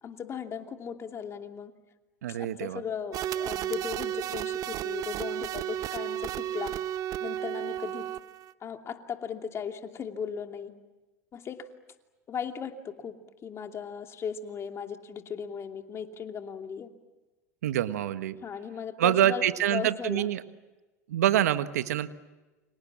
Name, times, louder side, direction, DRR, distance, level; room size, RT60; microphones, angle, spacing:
voice 1, 0.0-1.7 2.3-6.8 7.2-8.1 8.6-10.7 11.3-11.7 12.3-16.9 18.4-20.3, left 7 dB, 30° left, 5 dB, 2.7 m, -37 dB
voice 2, 2.2-2.8 17.6-18.4 19.0-20.4 21.1-22.1, right 12 dB, 80° right, 11 dB, 1.4 m, -26 dB
sound 1, 3.1-8.5, right 11 dB, 45° right, 0.9 m, -33 dB
29.5 x 26.0 x 7.3 m, 1.2 s
hypercardioid pair, 95°, 9 cm